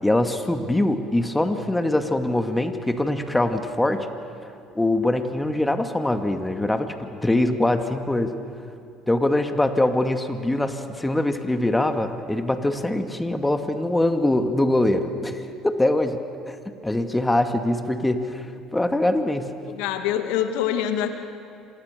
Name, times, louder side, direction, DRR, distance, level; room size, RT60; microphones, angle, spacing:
voice 1, 0.0-4.1 4.8-8.3 9.1-16.2 16.5-16.6 16.8-18.5 18.7-19.5, left 1 dB, 10° left, 6 dB, 2.2 m, -23 dB
voice 2, 19.7-21.1, left 10 dB, 70° left, 7 dB, 2.1 m, -25 dB
27.0 x 26.5 x 6.9 m, 2.6 s
hypercardioid pair, 65°, 0 cm